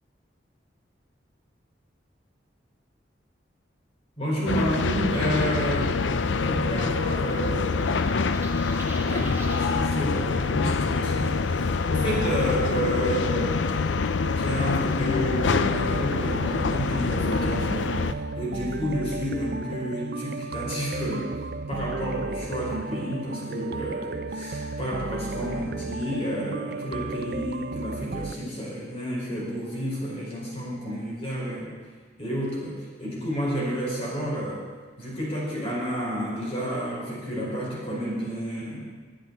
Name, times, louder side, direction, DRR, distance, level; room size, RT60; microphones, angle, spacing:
voice 1, 4.2-6.1 6.3-8.0 9.1-13.7 14.3-17.7 18.0-21.3 21.7-31.7 32.2-34.6 35.0-38.8, equal, 35° left, -5 dB, 4.9 m, -30 dB
sound 1, 4.5-18.1, left 4 dB, 85° left, 0.6 m, -25 dB
sound 2, 7.8-9.7, right 3 dB, 15° right, 1.5 m, -43 dB
sound 3, 15.5-28.3, right 3 dB, 55° right, 0.5 m, -34 dB
21.5 x 10.0 x 4.1 m, 1.5 s
head